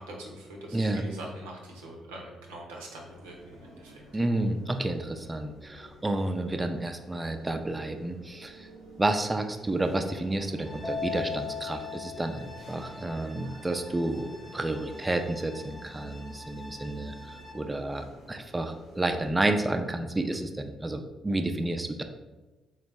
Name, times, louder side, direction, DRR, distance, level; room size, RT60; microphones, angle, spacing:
voice 1, 0.0-4.0, right 1 dB, 85° right, -1 dB, 0.6 m, -43 dB
sound 1, 3.0-19.3, equal, 90° left, 1.0 m, -52 dB
voice 2, 4.1-8.7 9.0-22.0, right 2 dB, 20° right, 6 dB, 0.4 m, -30 dB
sound 2, 10.5-17.5, left 2 dB, 25° left, 0.8 m, -48 dB
Keyboard (musical), 10.8-13.3, left 5 dB, 55° left, 0.8 m, -37 dB
3.9 x 2.0 x 3.4 m, 1.1 s
hypercardioid pair, 45°, 0 cm